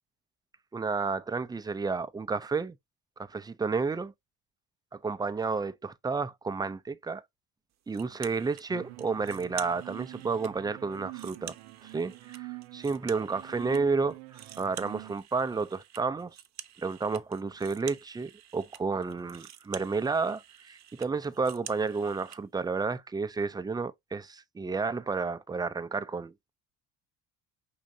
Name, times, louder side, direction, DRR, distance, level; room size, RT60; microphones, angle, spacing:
voice 1, 0.7-2.8 3.3-4.1 4.9-7.2 7.9-11.5 11.8-16.3 16.8-26.5, right 4 dB, 10° right, 0.4 m, -31 dB
sound 1, 7.9-8.7 9.0-10.5 10.9-13.8 14.1-22.4, right 11 dB, 50° right, 0.8 m, -48 dB
sound 2, 8.7-15.1, right 22 dB, 85° right, 0.6 m, -46 dB
5.0 x 3.7 x 2.7 m
supercardioid pair, 80°, 36 cm